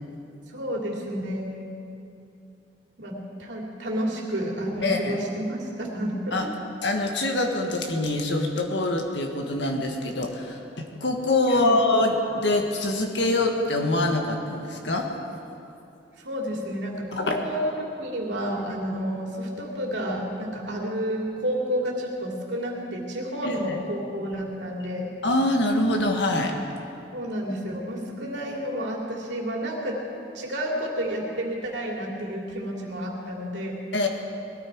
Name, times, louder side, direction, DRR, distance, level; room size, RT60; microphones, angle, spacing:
voice 1, 0.5-1.5 3.0-6.5 11.5-11.8 16.2-25.1 27.1-30.0 30.3-33.8, equal, 75° right, -1 dB, 2.6 m, -30 dB
voice 2, 4.8-5.2 6.3-6.5 6.8-15.1 17.1-17.4 23.4-23.7 25.2-26.6 33.9-34.1, left 2 dB, 70° left, 3 dB, 1.6 m, -24 dB
19.5 x 13.0 x 4.7 m, 2.8 s
head